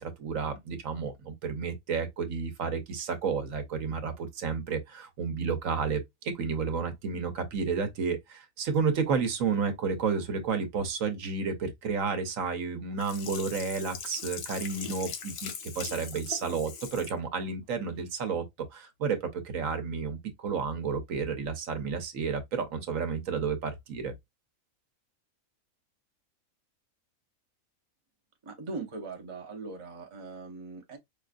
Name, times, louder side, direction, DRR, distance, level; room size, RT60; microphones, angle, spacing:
voice 1, 0.0-24.1, right 5 dB, 70° right, 1.2 m, -31 dB
Sink (filling or washing), 13.0-17.2 17.6-17.7, left 7 dB, 75° left, 1.2 m, -40 dB
voice 2, 28.4-31.0, right 3 dB, 25° right, 0.7 m, -40 dB
5.1 x 2.4 x 2.4 m
omnidirectional pair, 1.5 m